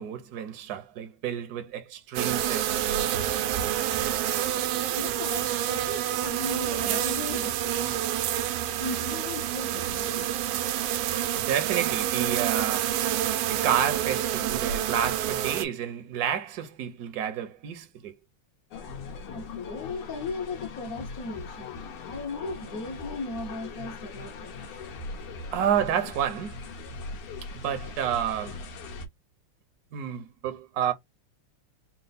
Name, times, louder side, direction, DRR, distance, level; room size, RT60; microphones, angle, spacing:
voice 1, 0.0-3.1 11.3-13.2 13.5-18.1 25.5-26.6 27.5-28.6 29.9-30.9, right 9 dB, 70° right, 0.9 m, -30 dB
sound 1, 2.2-15.7, right 11 dB, 85° right, 1.5 m, -28 dB
voice 2, 4.9-8.2 8.8-10.4 19.2-24.7, left 3 dB, 60° left, 0.9 m, -37 dB
sound 2, 18.7-29.1, left 4 dB, 85° left, 1.9 m, -40 dB
4.4 x 2.0 x 3.8 m
omnidirectional pair, 2.4 m